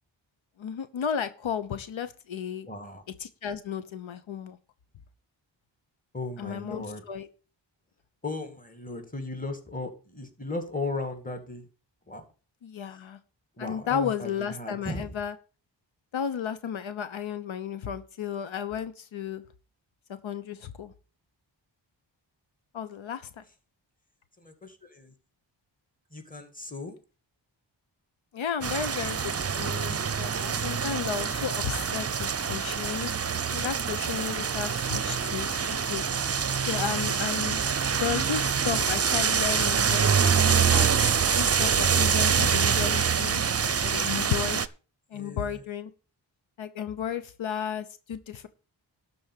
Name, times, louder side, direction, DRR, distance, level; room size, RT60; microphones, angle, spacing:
voice 1, 0.6-2.7 3.2-4.6 6.4-7.3 12.6-13.2 13.6-15.3 16.1-19.4 20.2-20.9 22.7-23.3 28.3-33.1 33.5-36.0 36.6-37.6 38.0-40.9 41.4-43.4 43.8-44.6 45.1-45.9 46.6-48.5, left 8 dB, 85° left, 11 dB, 1.0 m, -33 dB
voice 2, 2.7-3.0 6.1-7.0 8.2-11.7 12.1-12.2 13.6-15.1 24.4-25.1 26.1-27.0 45.1-45.6, left 2 dB, 20° left, 6 dB, 2.3 m, -36 dB
sound 1, 28.6-44.7, right 6 dB, 35° right, 0.6 m, -25 dB
12.5 x 4.3 x 8.4 m, 0.36 s
wide cardioid pair, 95°, 46 cm